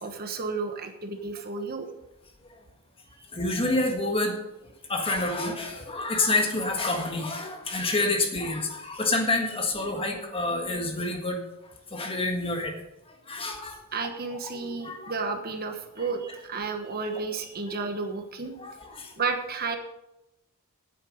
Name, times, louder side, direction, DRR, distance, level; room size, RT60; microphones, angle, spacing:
voice 1, 0.0-1.9 13.9-18.5 19.2-19.8, right 4 dB, 45° right, 6 dB, 1.2 m, -32 dB
voice 2, 3.3-4.4 4.9-11.4 11.9-12.7 13.3-13.8 14.5-15.1 16.0-16.1 18.6-19.1, left 2 dB, 25° left, 3 dB, 1.7 m, -28 dB
9.1 x 8.6 x 6.5 m, 0.92 s
head